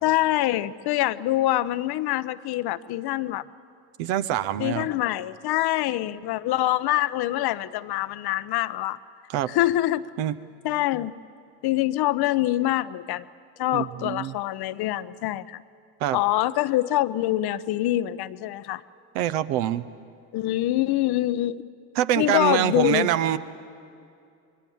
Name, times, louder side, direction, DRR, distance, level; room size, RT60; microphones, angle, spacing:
voice 1, 0.0-3.4 4.6-9.0 9.5-10.1 10.6-11.2 11.6-13.2 13.6-15.6 16.1-18.8 20.3-21.6 22.2-23.1, left 15 dB, 50° left, 15 dB, 0.8 m, -25 dB
voice 2, 4.0-4.9 9.3-9.5 10.2-10.3 13.7-14.3 16.0-16.2 19.1-19.8 22.0-23.4, right 11 dB, 65° right, 13 dB, 1.0 m, -25 dB
24.5 x 21.5 x 7.1 m, 2.5 s
hypercardioid pair, 60°, 47 cm